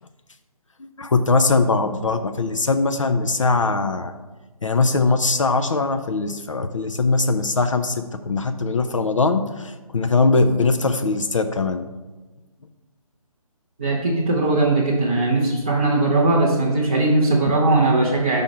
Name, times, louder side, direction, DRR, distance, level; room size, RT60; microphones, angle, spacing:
voice 1, 1.0-4.1 4.6-11.8, left 3 dB, 60° left, 8 dB, 0.5 m, -21 dB
voice 2, 13.8-18.4, right 2 dB, 15° right, -6 dB, 0.4 m, -19 dB
5.3 x 4.5 x 6.0 m, 1.2 s
figure-of-eight pair, 145°, 19 cm